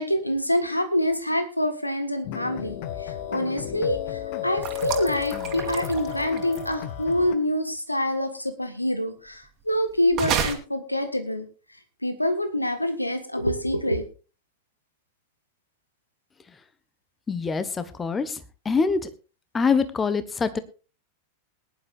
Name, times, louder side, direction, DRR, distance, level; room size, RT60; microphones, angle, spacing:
voice 1, 0.0-11.5 12.0-14.1, left 1 dB, 85° left, 9 dB, 1.6 m, -26 dB
sound 1, 2.2-7.3, left 11 dB, 50° left, 1.5 m, -33 dB
sound 2, 4.6-6.8 10.1-10.5, right 8 dB, 35° right, 2.4 m, -30 dB
voice 2, 17.3-19.0 19.5-20.6, left 5 dB, 15° left, 13 dB, 1.3 m, -25 dB
21.0 x 11.0 x 2.5 m, 0.33 s
figure-of-eight pair, 90°, 0 cm